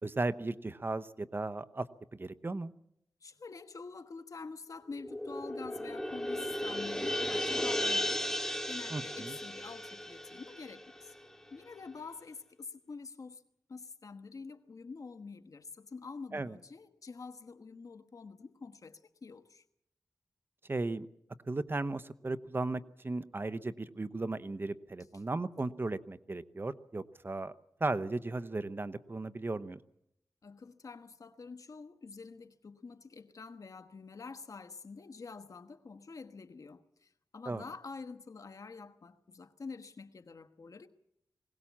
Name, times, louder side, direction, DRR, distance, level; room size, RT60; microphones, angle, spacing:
voice 1, 0.0-1.9 2.1-2.7 8.9-9.4 16.3-16.6 20.7-21.1 21.5-27.5 27.8-29.8 37.5-37.6, right 2 dB, 35° right, 0.8 m, -36 dB
voice 2, 3.2-8.4 8.7-11.2 11.5-13.4 13.7-19.6 30.4-40.9, left 4 dB, 65° left, 1.3 m, -47 dB
sound 1, 4.9-11.5, left 1 dB, 10° left, 2.3 m, -35 dB
21.0 x 18.0 x 7.4 m
wide cardioid pair, 70°, 6 cm